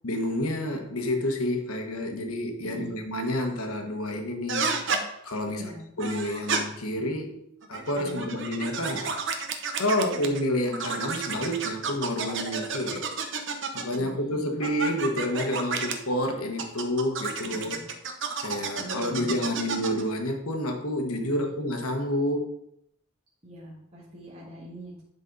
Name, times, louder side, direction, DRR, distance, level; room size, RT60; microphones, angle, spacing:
voice 1, 0.0-4.7 5.2-5.6 6.0-7.4 7.7-9.2 9.8-13.0 13.7-17.8 18.4-22.5, left 1 dB, 90° left, 4 dB, 1.2 m, -29 dB
voice 2, 2.6-3.0 5.5-5.8 8.0-8.3 10.0-10.4 14.0-14.5 17.4-17.8 18.8-19.4 21.2-21.6 23.4-24.9, right 1 dB, 25° right, -8 dB, 1.7 m, -42 dB
sound 1, 4.5-5.0 6.0-6.6 7.6-10.4 10.7-14.0 14.6-16.0 16.6-20.0, right 5 dB, 60° right, 0.8 m, -31 dB
10.5 x 4.1 x 3.9 m, 0.76 s
head